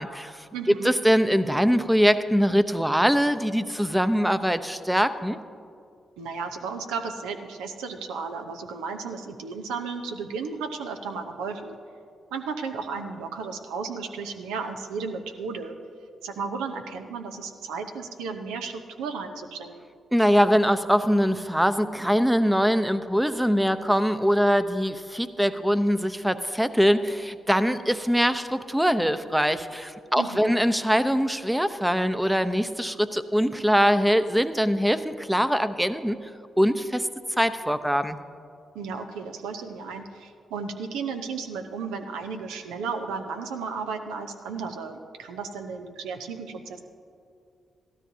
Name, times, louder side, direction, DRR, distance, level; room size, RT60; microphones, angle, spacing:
voice 1, 0.0-0.4 0.8-5.4 20.1-36.2 36.6-37.1 37.4-38.2, equal, 5° right, 11 dB, 0.7 m, -23 dB
voice 2, 0.5-0.9 6.2-11.8 12.3-15.8 16.2-19.9 30.1-30.5 38.7-46.8, right 5 dB, 85° right, 5 dB, 0.8 m, -34 dB
16.5 x 13.0 x 2.8 m, 2.4 s
hypercardioid pair, 40°, 0 cm